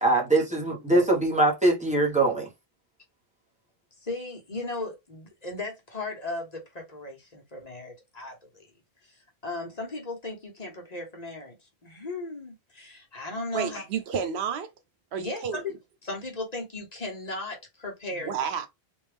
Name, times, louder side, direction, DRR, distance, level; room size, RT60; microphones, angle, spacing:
voice 1, 0.0-2.5, right 2 dB, 5° right, 1.1 m, -22 dB
voice 2, 0.9-1.4 4.0-8.7 9.0-11.6 11.8-13.8 15.2-15.7 16.0-18.3, left 2 dB, 40° left, 1.2 m, -36 dB
voice 3, 13.5-14.7 15.1-15.6 18.2-18.7, right 7 dB, 85° right, 0.9 m, -30 dB
3.5 x 2.6 x 3.4 m
omnidirectional pair, 1.0 m